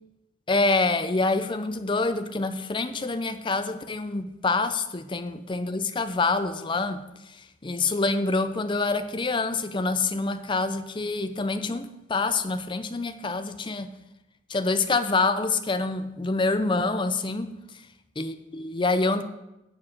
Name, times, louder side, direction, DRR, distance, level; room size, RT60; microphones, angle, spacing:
voice 1, 0.5-7.0 7.6-13.9 14.5-17.5 18.2-19.2, left 3 dB, 25° left, 10 dB, 0.5 m, -26 dB
8.6 x 4.7 x 7.3 m, 0.92 s
head